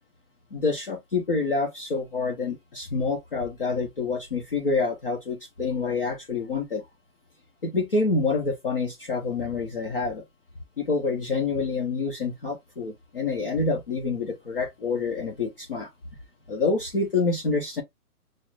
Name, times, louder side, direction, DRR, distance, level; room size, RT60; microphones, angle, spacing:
voice 1, 0.5-6.8 7.6-10.2 10.8-15.9 16.5-17.8, left 4 dB, 40° left, 0.6 m, -27 dB
5.9 x 2.0 x 2.3 m
hypercardioid pair, 175°, 45 cm